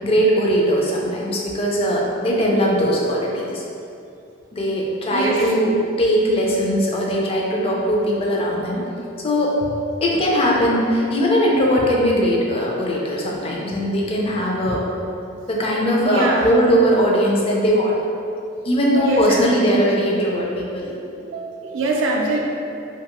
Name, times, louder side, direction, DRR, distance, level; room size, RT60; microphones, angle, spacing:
voice 1, 0.0-3.6 4.5-8.8 9.2-9.5 10.0-14.9 15.5-18.0 18.6-20.9, equal, 30° left, -3 dB, 0.4 m, -20 dB
voice 2, 5.1-5.5 16.0-16.6 19.0-20.2 21.2-22.4, right 2 dB, 75° right, -1 dB, 0.4 m, -24 dB
2.7 x 2.3 x 2.9 m, 2.6 s
head